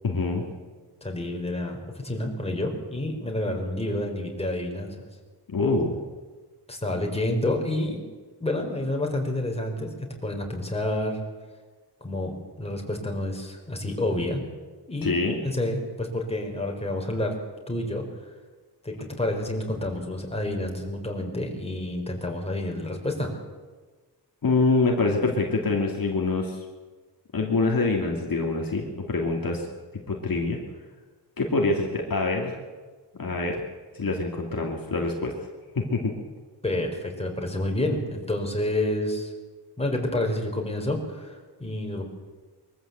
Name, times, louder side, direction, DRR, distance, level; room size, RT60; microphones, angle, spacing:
voice 1, 0.0-0.4 5.5-6.0 15.0-15.4 24.4-26.6 27.3-29.7 30.1-30.6 31.4-32.5 33.2-33.6 33.9-35.3 35.8-36.1, left 3 dB, 55° left, 0 dB, 2.6 m, -25 dB
voice 2, 1.0-5.0 6.7-8.0 8.4-9.9 10.2-11.2 12.0-14.4 14.9-15.1 15.4-17.3 17.7-18.1 18.8-23.3 36.6-39.3 39.8-42.0, left 1 dB, 15° left, 1 dB, 4.3 m, -29 dB
22.5 x 14.5 x 8.0 m, 1.4 s
wide cardioid pair, 115°, 41 cm